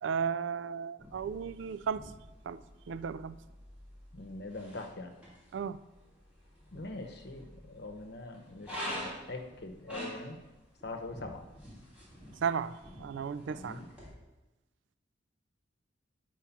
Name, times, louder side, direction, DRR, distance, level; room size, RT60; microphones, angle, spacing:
voice 1, 0.0-2.0 2.5-2.6 2.9-3.4 5.5-5.8 12.4-13.8, right 6 dB, 70° right, 15 dB, 0.3 m, -34 dB
sound 1, 1.0-14.1, equal, 5° right, 2.5 m, -47 dB
voice 2, 4.1-5.1 6.7-10.4 10.8-11.5 13.5-13.9, left 2 dB, 55° left, 4 dB, 0.9 m, -43 dB
8.2 x 4.6 x 5.8 m, 1.1 s
head